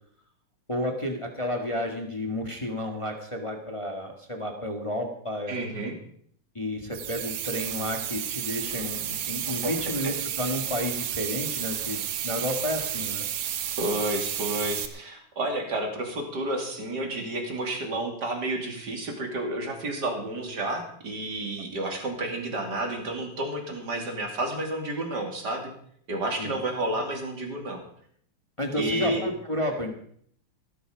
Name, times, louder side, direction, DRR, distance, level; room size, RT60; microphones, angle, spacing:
voice 1, 0.7-5.6 6.5-13.3 26.4-26.6 28.6-29.9, left 1 dB, 20° left, 3 dB, 0.8 m, -31 dB
voice 2, 5.5-6.0 9.6-9.7 10.0-10.1 13.8-25.7 26.1-27.8 28.8-29.2, right 1 dB, 35° right, 2 dB, 3.0 m, -30 dB
sound 1, 6.9-14.9, right 10 dB, 65° right, 1.9 m, -32 dB
17.5 x 11.5 x 5.1 m, 0.63 s
omnidirectional pair, 3.7 m